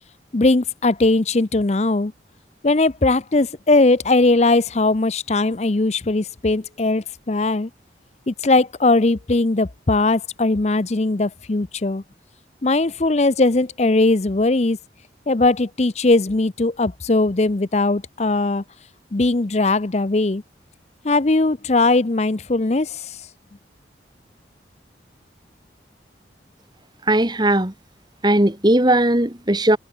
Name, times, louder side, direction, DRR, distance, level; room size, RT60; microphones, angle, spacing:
voice 1, 0.3-2.1 2.6-7.7 8.3-12.0 12.6-14.8 15.3-18.6 19.1-20.4 21.0-23.2, left 2 dB, 35° left, 0.7 m, -19 dB
voice 2, 27.1-27.7 28.2-29.8, right 1 dB, 25° right, 1.8 m, -17 dB
head